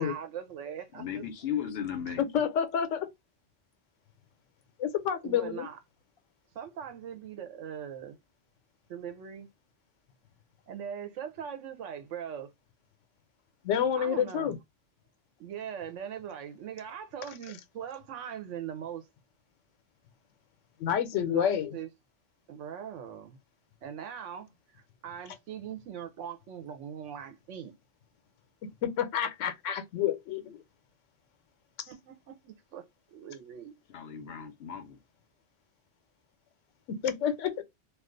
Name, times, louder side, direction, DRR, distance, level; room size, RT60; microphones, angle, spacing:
voice 1, 0.0-1.2 2.1-2.2 5.2-5.8 6.5-8.2 8.9-9.5 10.7-12.5 14.0-14.5 15.4-19.1 21.3-21.9 22.5-23.4 23.8-27.8 31.9-33.7, right 8 dB, 85° right, 1.0 m, -41 dB
voice 2, 0.9-2.2 33.9-35.0, left 9 dB, 60° left, 0.8 m, -36 dB
voice 3, 2.2-3.1 4.8-5.7 13.6-14.6 20.8-21.7 28.8-30.6 37.0-37.6, left 8 dB, 90° left, 0.9 m, -29 dB
2.4 x 2.3 x 3.7 m
omnidirectional pair, 1.2 m